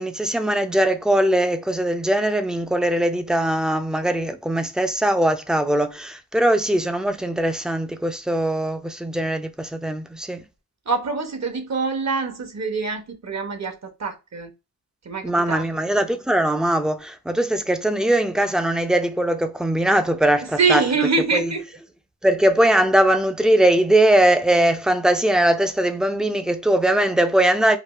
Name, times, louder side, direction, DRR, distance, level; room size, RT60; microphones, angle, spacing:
voice 1, 0.0-10.4 15.2-20.8 21.3-21.5 22.2-27.8, right 1 dB, ahead, 0.4 m, -20 dB
voice 2, 10.9-14.5 15.0-15.6 20.6-21.6, right 4 dB, 45° right, 0.7 m, -24 dB
4.8 x 2.4 x 2.3 m
wide cardioid pair, 140°, 37 cm